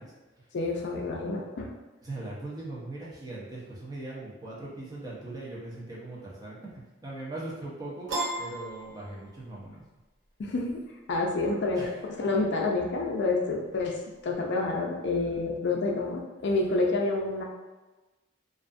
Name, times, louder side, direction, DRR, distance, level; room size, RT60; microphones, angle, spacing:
voice 1, 0.0-0.5 2.0-6.6 7.0-8.1 8.4-9.8 11.7-12.0 15.2-15.9, right 2 dB, 20° right, -6 dB, 0.6 m, -40 dB
voice 2, 0.5-1.7 10.4-10.8 11.1-11.9 12.2-14.0 14.2-17.4, left 3 dB, 60° left, 0 dB, 0.4 m, -28 dB
Piano, 8.1-9.6, right 2 dB, 70° right, 0.8 m, -34 dB
2.5 x 2.3 x 2.5 m, 1.2 s
head